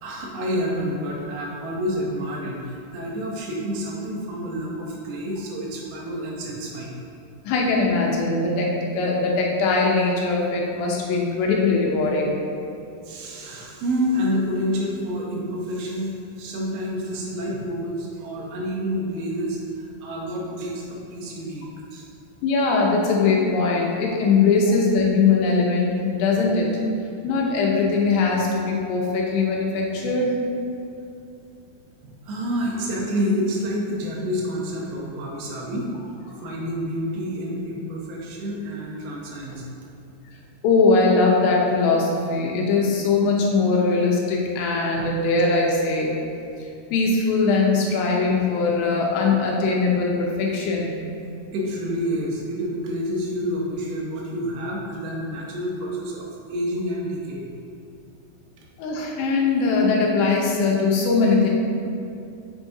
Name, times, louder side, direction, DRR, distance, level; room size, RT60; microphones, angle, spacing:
voice 1, 0.0-6.9 13.0-21.7 21.9-22.1 24.7-24.8 32.0-35.9 36.4-39.6 51.5-57.5, equal, 75° right, -2 dB, 2.7 m, -28 dB
voice 2, 7.4-12.4 22.4-26.7 27.2-30.4 40.6-46.1 46.9-51.0 58.8-61.5, left 4 dB, 90° left, -1 dB, 3.1 m, -21 dB
8.2 x 6.0 x 2.7 m, 2.6 s
omnidirectional pair, 4.8 m